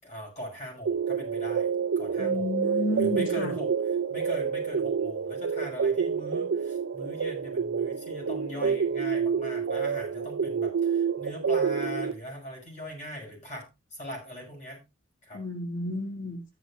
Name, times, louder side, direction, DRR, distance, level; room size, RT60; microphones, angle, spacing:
voice 1, 0.0-1.7 2.0-2.5 2.9-3.7 4.1-14.9 15.2-15.4, equal, 40° left, -1 dB, 6.4 m, -40 dB
sound 1, 0.9-12.1, right 6 dB, 75° right, 0.5 m, -28 dB
voice 2, 2.2-3.5 15.3-16.4, left 1 dB, 65° left, 3 dB, 2.3 m, -31 dB
13.5 x 10.5 x 2.5 m, 0.24 s
head